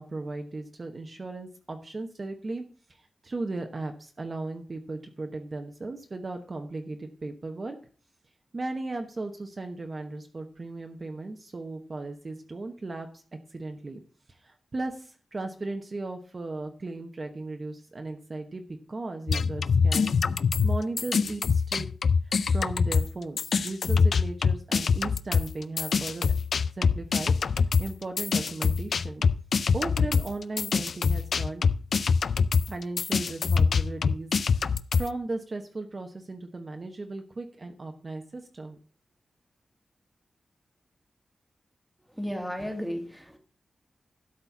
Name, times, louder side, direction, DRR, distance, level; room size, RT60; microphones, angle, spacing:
voice 1, 0.0-7.8 8.5-13.2 13.5-14.0 14.3-20.1 20.6-21.9 22.5-26.3 26.7-29.2 29.7-31.6 32.7-38.8, right 2 dB, 35° right, 1.0 m, -36 dB
sound 1, 19.3-23.1 23.4-35.1, left 5 dB, 70° left, 0.4 m, -24 dB
voice 2, 42.1-43.4, equal, ahead, 1.6 m, -34 dB
12.0 x 4.3 x 7.1 m
wide cardioid pair, 135°, 0 cm